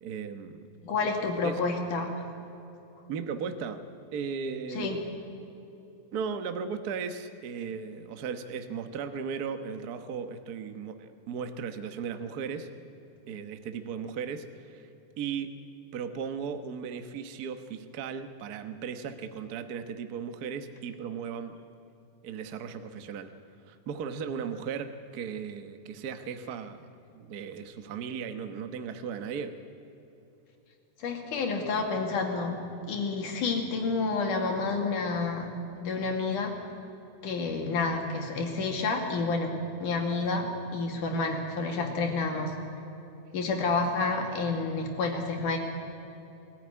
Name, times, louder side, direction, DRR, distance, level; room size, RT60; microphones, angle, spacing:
voice 1, 0.0-0.6 1.4-1.6 3.1-3.8 4.1-4.9 6.1-12.7 13.3-14.8 15.2-15.5 15.9-21.6 22.2-23.3 23.7-29.5, right 6 dB, 75° right, 8 dB, 0.8 m, -36 dB
voice 2, 0.8-2.1 4.7-5.0 31.0-32.6 32.9-35.5 35.8-36.6 37.2-42.5 43.3-45.6, left 3 dB, 85° left, 2 dB, 3.9 m, -29 dB
22.5 x 14.5 x 9.7 m, 3.0 s
omnidirectional pair, 3.6 m